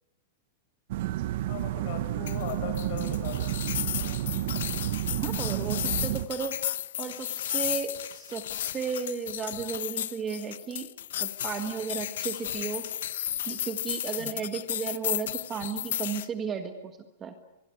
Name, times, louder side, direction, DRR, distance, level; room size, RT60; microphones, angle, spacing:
sound 1, 0.9-6.3, right 14 dB, 50° right, 0.9 m, -31 dB
voice 1, 1.5-4.2 14.2-14.4, left 7 dB, 40° left, 7 dB, 6.3 m, -39 dB
sound 2, 2.3-16.3, left 11 dB, 70° left, 1.0 m, -34 dB
voice 2, 5.2-6.6 7.0-10.9 11.2-12.9 13.5-16.9 17.2-17.3, right 6 dB, 15° right, 8 dB, 1.6 m, -34 dB
23.5 x 22.5 x 9.8 m, 0.94 s
supercardioid pair, 175°, 0 cm